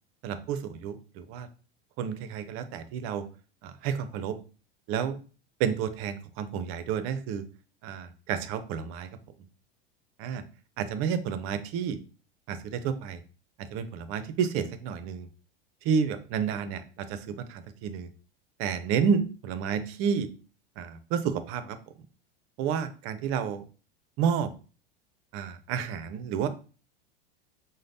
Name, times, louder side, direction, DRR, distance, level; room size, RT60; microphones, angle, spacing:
voice 1, 0.2-1.5 2.0-3.2 3.6-4.4 4.9-5.2 5.6-7.4 7.8-9.1 10.2-10.4 10.8-12.0 12.5-13.2 13.6-15.3 15.8-18.1 18.6-20.3 20.8-21.9 22.6-23.6 24.2-24.5 25.3-26.5, right 7 dB, 50° right, 11 dB, 0.6 m, -30 dB
5.0 x 2.1 x 2.6 m, 0.37 s
hypercardioid pair, 95°, 29 cm